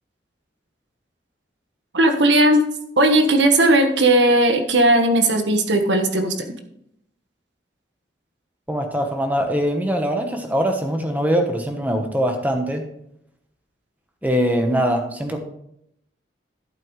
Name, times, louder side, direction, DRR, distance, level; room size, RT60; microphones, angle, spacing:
voice 1, 1.9-2.6 3.0-6.5, right 1 dB, 75° right, 5 dB, 1.3 m, -17 dB
voice 2, 8.7-12.9 14.2-15.4, equal, 10° right, 4 dB, 1.1 m, -22 dB
11.0 x 8.7 x 3.2 m, 0.76 s
head